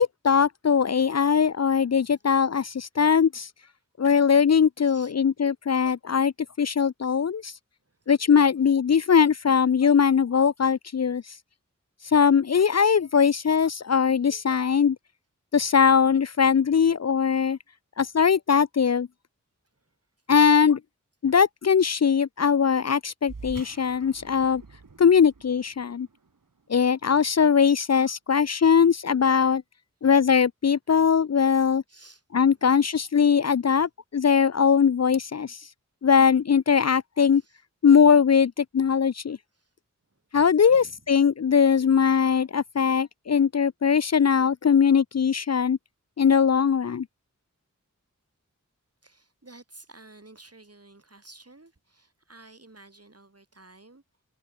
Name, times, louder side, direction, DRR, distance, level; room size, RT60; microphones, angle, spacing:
voice 1, 0.0-3.5 4.0-6.3 6.6-7.5 8.1-11.2 12.0-15.0 15.5-17.6 18.0-19.1 20.3-20.8 21.2-24.6 25.0-26.1 26.7-29.6 30.0-31.8 32.3-35.6 36.0-37.4 37.8-39.4 40.3-45.8 46.2-47.1, left 6 dB, 55° left, 0.5 m, -21 dB
voice 2, 19.6-20.0 31.9-32.2 32.5-32.7 33.7-33.9 37.3-37.6 39.5-39.7 40.1-40.2 40.7-41.0 49.0-54.0, right 2 dB, 50° right, 7.7 m, -52 dB
sound 1, 23.2-28.1, right 4 dB, 80° right, 2.6 m, -47 dB
wide cardioid pair, 60°, 32 cm